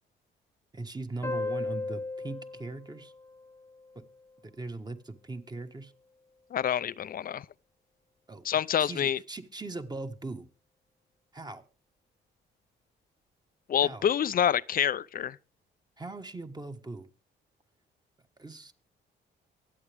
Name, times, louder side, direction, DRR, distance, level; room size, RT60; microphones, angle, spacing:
voice 1, 0.7-3.1 3.9-4.0 4.4-5.9 8.3-10.5 11.3-11.6 13.8-14.1 16.0-17.1 18.4-18.7, right 2 dB, 20° right, 1.4 m, -40 dB
sound 1, 1.2-4.4, left 3 dB, 15° left, 0.8 m, -37 dB
voice 2, 6.5-7.5 8.4-9.2 13.7-15.4, left 9 dB, 45° left, 0.5 m, -27 dB
24.0 x 8.2 x 3.5 m
cardioid pair, 90°, 20 cm